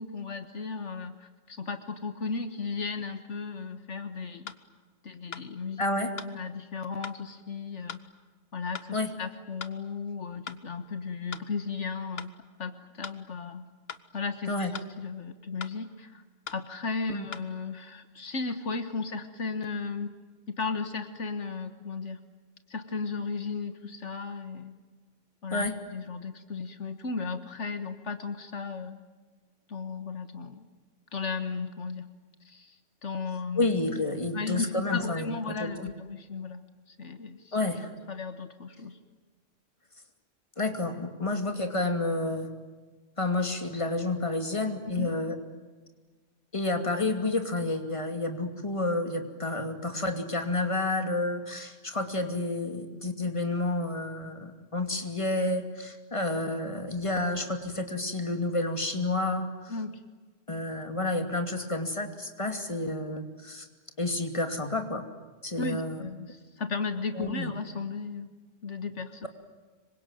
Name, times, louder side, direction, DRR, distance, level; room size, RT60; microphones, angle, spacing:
voice 1, 0.0-4.5 5.0-5.8 6.2-8.0 8.5-12.3 12.6-13.6 14.1-16.2 16.5-20.1 20.5-22.2 22.7-24.7 25.4-29.0 29.7-30.7 31.1-32.1 32.4-33.7 34.3-36.6 36.9-37.6 38.1-39.0 44.9-45.1 59.7-60.0 65.6-68.3 68.6-69.3, left 4 dB, 75° left, 9 dB, 1.8 m, -35 dB
sound 1, 4.5-4.6 5.3-5.5 6.2-6.3 7.0-7.2 7.9-8.1 8.7-8.9 9.6-9.8 10.5-10.6 11.3-11.5 12.2-12.3 13.0-13.2 13.9-14.1 14.7-14.9 15.6-15.8 16.5-16.6 17.3-17.5, left 6 dB, 55° left, 1.4 m, -40 dB
voice 2, 5.8-6.1 8.9-9.1 14.5-14.7 17.1-17.3 25.5-25.8 33.6-35.9 37.5-37.9 40.6-42.5 43.2-45.3 46.5-59.7 60.5-63.7 64.0-65.0 65.4-66.0 67.1-67.5, left 2 dB, 25° left, 6 dB, 2.6 m, -30 dB
26.5 x 24.0 x 9.2 m, 1.3 s
omnidirectional pair, 1.3 m